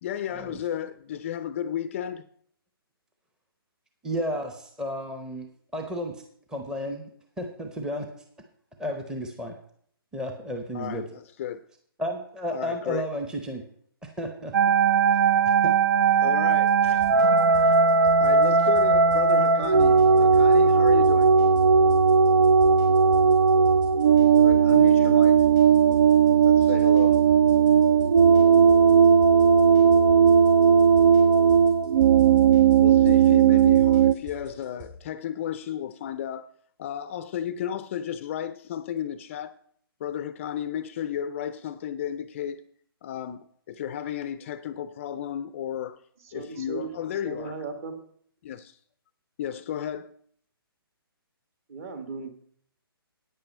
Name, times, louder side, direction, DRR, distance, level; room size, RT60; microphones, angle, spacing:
voice 1, 0.0-2.3 10.7-11.6 12.5-13.1 16.2-17.0 17.5-17.8 18.2-21.3 24.4-25.4 26.4-27.3 32.8-36.5 36.8-39.5 40.0-42.6 43.0-46.0 46.3-47.6 48.4-48.8 49.4-50.2, left 10 dB, 30° left, 0.4 m, -33 dB
voice 2, 4.0-5.5 5.7-6.1 6.5-7.0 7.4-8.1 8.8-9.5 10.1-11.0 12.0-13.6 14.0-14.5 15.6-15.7, equal, 5° right, 0.8 m, -32 dB
sound 1, 14.5-34.1, right 6 dB, 70° right, 0.6 m, -18 dB
sound 2, 16.5-34.9, right 2 dB, 50° right, 4.5 m, -47 dB
voice 3, 46.2-48.0 51.7-52.3, right 4 dB, 35° right, 1.5 m, -37 dB
9.2 x 8.8 x 5.4 m
hypercardioid pair, 145°, 13 cm